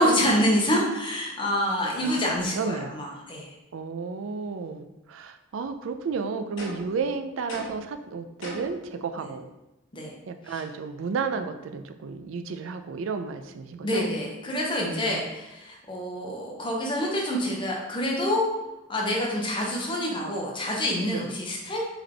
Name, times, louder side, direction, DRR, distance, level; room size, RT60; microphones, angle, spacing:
voice 1, 0.0-3.5 9.2-9.3 9.9-10.1 10.5-10.6 13.8-18.5 18.9-21.8, equal, 25° left, -2 dB, 0.9 m, -27 dB
voice 2, 2.5-3.0 3.7-9.5 10.3-14.1 14.9-15.3 21.1-21.3, right 5 dB, 80° right, 8 dB, 0.4 m, -32 dB
sound 1, 6.6-7.0 7.5-7.9 8.4-8.8, left 1 dB, 70° left, 1.0 m, -39 dB
3.5 x 3.3 x 3.7 m, 0.97 s
head